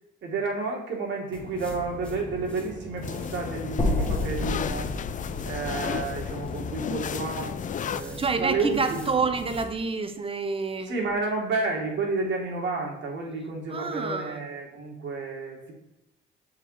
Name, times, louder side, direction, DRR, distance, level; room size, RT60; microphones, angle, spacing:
voice 1, 0.2-4.9 5.4-7.5 7.9-9.1 10.9-15.7, right 3 dB, 70° right, 0 dB, 2.3 m, -31 dB
sound 1, 1.3-9.7, equal, 5° left, 1.6 m, -41 dB
sound 2, 3.0-8.0, left 8 dB, 40° left, 0.4 m, -33 dB
sound 3, 3.8-8.0, left 2 dB, 25° left, 1.7 m, -31 dB
voice 2, 8.2-10.9 13.7-14.4, right 4 dB, 25° right, 8 dB, 1.0 m, -28 dB
7.2 x 4.9 x 4.9 m, 0.94 s
cardioid pair, 90°, 20 cm